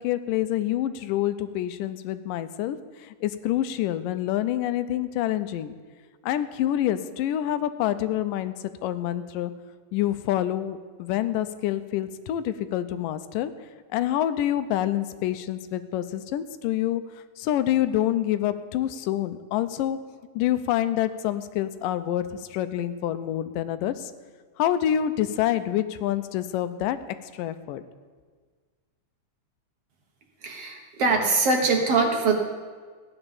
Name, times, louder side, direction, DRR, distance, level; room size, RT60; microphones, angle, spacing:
voice 1, 0.0-5.7 6.2-9.5 9.9-13.5 13.9-17.0 17.4-20.0 20.4-24.1 24.6-27.0 27.3-27.8, left 12 dB, 85° left, 12 dB, 2.3 m, -27 dB
voice 2, 30.4-32.3, right 4 dB, 55° right, 2 dB, 1.9 m, -22 dB
15.0 x 10.0 x 7.1 m, 1.5 s
omnidirectional pair, 3.8 m